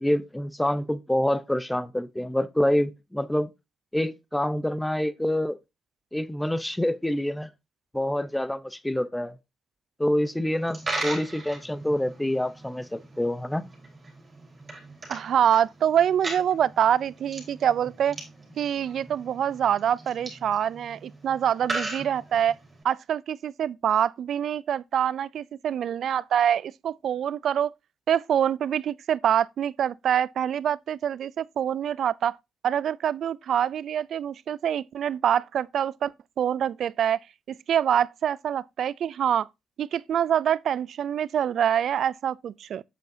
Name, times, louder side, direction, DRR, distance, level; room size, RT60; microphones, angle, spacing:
voice 1, 0.0-3.5 3.9-5.6 6.1-7.5 7.9-9.3 10.0-13.7, left 1 dB, 5° left, 0.6 m, -26 dB
Coin (dropping), 10.5-22.8, right 2 dB, 25° right, 4.0 m, -38 dB
voice 2, 15.1-18.2 18.6-22.6 22.8-27.7 28.1-32.4 32.6-36.1 36.4-37.2 37.5-39.5 39.8-42.8, right 9 dB, 65° right, 0.3 m, -25 dB
8.0 x 7.2 x 2.7 m
cardioid pair, 90°, 0 cm